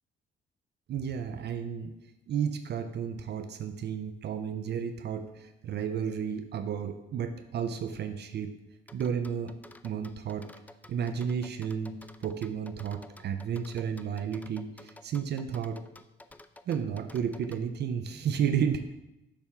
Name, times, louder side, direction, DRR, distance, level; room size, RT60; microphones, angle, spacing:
voice 1, 0.9-2.0 2.3-8.5 8.9-9.6 9.8-10.5 10.9-15.8 16.7-18.8, right 7 dB, 55° right, 9 dB, 0.5 m, -32 dB
sound 1, 8.9-17.6, left 2 dB, 10° left, 0.3 m, -52 dB
7.0 x 3.5 x 5.6 m, 0.93 s
cardioid pair, 90°, 20 cm